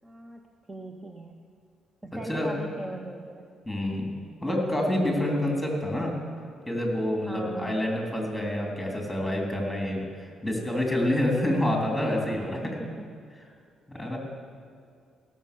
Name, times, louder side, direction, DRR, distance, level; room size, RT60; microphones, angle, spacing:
voice 1, 0.0-1.4 2.0-3.5 4.5-4.6 7.3-7.8 12.6-13.1 14.0-14.2, right 1 dB, 20° right, 4 dB, 0.8 m, -40 dB
voice 2, 3.6-4.1 4.4-6.1 6.6-12.7 13.9-14.2, left 1 dB, 5° left, -1 dB, 3.2 m, -27 dB
17.0 x 6.6 x 6.9 m, 2.3 s
cardioid pair, 90°, 0 cm